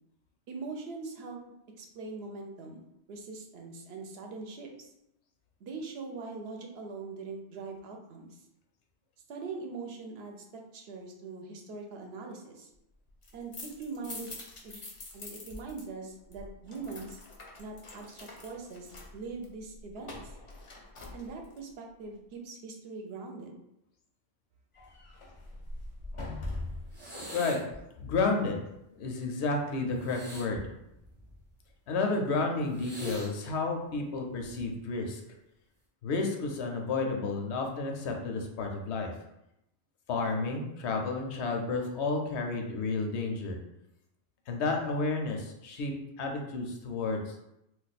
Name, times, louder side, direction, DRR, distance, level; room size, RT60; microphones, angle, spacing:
voice 1, 0.5-1.4 1.8-2.8 3.1-4.9 5.6-8.4 9.3-12.7 13.3-14.3 14.6-14.8 15.1-17.2 17.6-20.3 21.1-23.6, right 4 dB, 75° right, 2 dB, 0.8 m, -42 dB
sound 1, 13.1-15.8 16.1-21.7 24.7-27.0, left 2 dB, 45° left, 0.4 m, -43 dB
sound 2, 26.9-27.8 30.0-31.5 32.7-33.3 34.4-34.7, equal, 10° right, 0.6 m, -43 dB
voice 2, 28.0-28.6 29.0-30.6 31.9-35.2 36.0-39.1 40.1-43.6 44.5-47.4, left 3 dB, 90° left, 3 dB, 0.9 m, -31 dB
2.4 x 2.3 x 4.0 m, 0.84 s
omnidirectional pair, 1.1 m